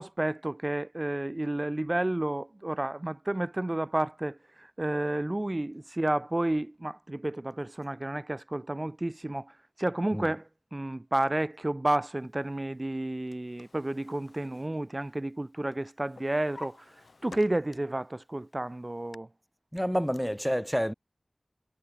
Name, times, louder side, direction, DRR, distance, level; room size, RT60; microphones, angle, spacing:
voice 1, 0.0-16.8 17.2-19.3, right 1 dB, 35° right, 0.9 m, -31 dB
Drawer open or close, 13.0-15.4 15.7-18.0 18.5-19.2, left 3 dB, 85° left, 6.3 m, -51 dB
voice 2, 19.7-20.9, equal, ahead, 0.4 m, -28 dB
wide cardioid pair, 40°, 0 cm